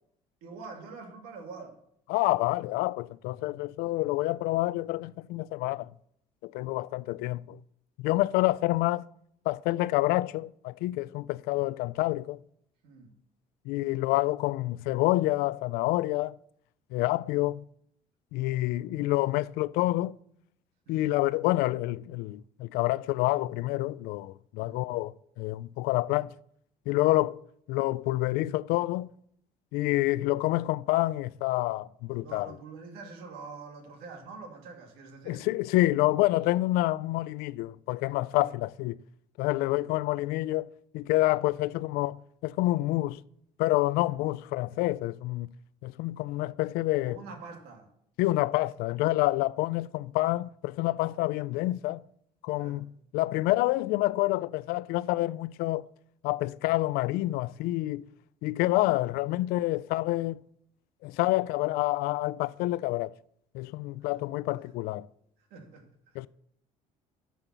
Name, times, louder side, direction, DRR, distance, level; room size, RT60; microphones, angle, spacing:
voice 1, 0.4-1.8 12.8-13.1 20.9-21.1 24.6-24.8 32.2-35.5 38.3-38.4 39.7-39.9 44.1-44.2 47.0-47.9 52.6-52.8 58.9-59.0 64.1-64.2 65.5-65.9, right 4 dB, 90° right, 2.3 m, -45 dB
voice 2, 2.1-5.9 6.4-7.6 8.0-9.0 9.5-12.4 13.7-16.4 16.9-17.6 18.3-20.2 20.9-26.3 26.9-27.4 27.7-29.1 29.7-32.6 35.3-39.0 39.4-43.2 43.6-45.5 45.8-47.2 48.2-52.0 52.4-55.9 56.2-58.1 58.4-60.4 61.0-63.1 63.5-65.1 66.2-66.3, left 18 dB, 85° left, 0.4 m, -28 dB
12.0 x 5.7 x 6.1 m
cardioid pair, 135°, 15 cm